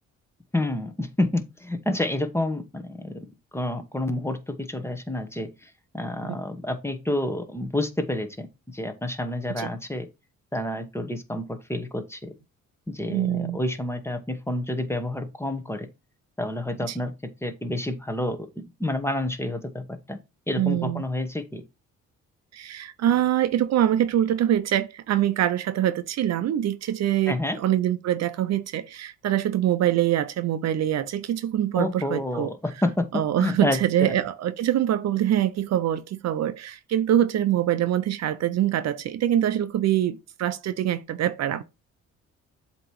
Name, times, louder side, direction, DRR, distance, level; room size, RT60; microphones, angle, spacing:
voice 1, 0.5-3.3 3.5-10.1 10.5-12.3 12.9-15.9 16.4-17.1 17.4-18.5 18.8-20.2 20.5-21.6 27.3-27.6 31.7-34.2, left 1 dB, 10° left, 1.1 m, -29 dB
voice 2, 13.1-13.6 16.9-17.0 20.5-21.0 22.5-32.5 33.1-41.6, right 11 dB, 60° right, 0.6 m, -24 dB
7.6 x 3.0 x 4.7 m
cardioid pair, 90°, 30 cm